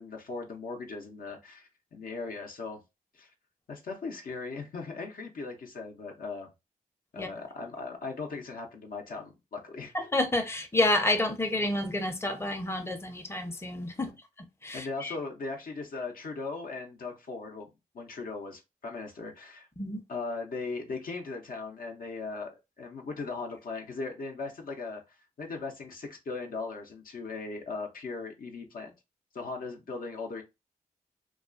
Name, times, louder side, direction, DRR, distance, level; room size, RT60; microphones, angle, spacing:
voice 1, 0.0-2.8 3.1-3.3 3.7-6.5 7.1-9.9 14.0-14.1 14.7-17.7 17.9-19.7 20.1-28.9 29.3-30.4, left 4 dB, 70° left, 0.6 m, -38 dB
voice 2, 9.9-14.1 14.6-15.1 19.8-20.0, left 1 dB, 15° left, 0.6 m, -29 dB
2.3 x 2.2 x 2.4 m
cardioid pair, 40°, 15 cm